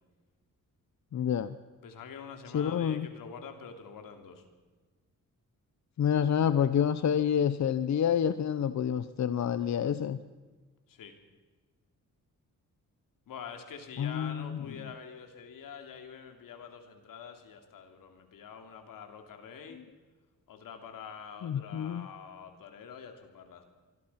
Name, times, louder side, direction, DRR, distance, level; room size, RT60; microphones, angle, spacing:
voice 1, 1.1-1.6 2.5-3.1 6.0-10.2 14.0-14.8 19.7-19.8 21.4-22.1, left 8 dB, 60° left, 13 dB, 0.9 m, -28 dB
voice 2, 1.8-4.4 10.9-11.1 13.3-19.8 20.5-23.6, left 6 dB, 90° left, 5 dB, 3.4 m, -46 dB
26.0 x 23.0 x 5.9 m, 1.3 s
cardioid pair, 120°, 32 cm